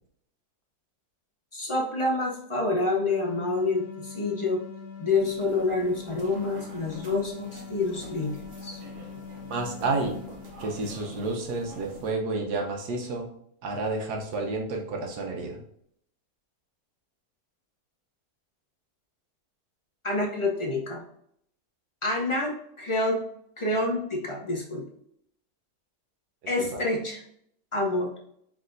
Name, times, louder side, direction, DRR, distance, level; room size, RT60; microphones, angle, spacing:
voice 1, 1.5-4.6 5.0-8.8 20.0-21.0 22.0-23.2 23.6-24.8 26.5-27.2 27.7-28.1, left 2 dB, 35° left, -1 dB, 0.4 m, -27 dB
sound 1, 3.1-11.2, left 6 dB, 65° left, 1.0 m, -43 dB
sound 2, 5.1-12.1, right 1 dB, 50° right, 1.2 m, -46 dB
voice 2, 9.5-10.2 10.6-13.3 13.6-15.6 26.4-26.8, right 3 dB, 75° right, 2 dB, 1.4 m, -30 dB
4.7 x 4.1 x 2.6 m, 0.71 s
omnidirectional pair, 1.7 m